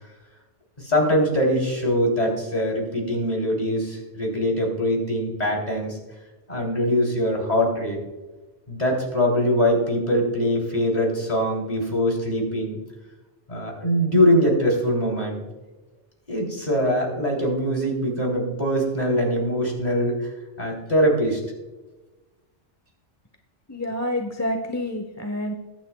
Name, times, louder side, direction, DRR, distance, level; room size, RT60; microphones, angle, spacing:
voice 1, 0.8-6.0 6.5-8.0 8.7-12.8 13.5-15.4 16.3-20.3 20.6-21.4, equal, 35° left, 0 dB, 3.5 m, -22 dB
voice 2, 23.7-25.5, left 1 dB, 15° left, 4 dB, 0.9 m, -28 dB
22.5 x 9.5 x 2.3 m, 1.2 s
omnidirectional pair, 1.2 m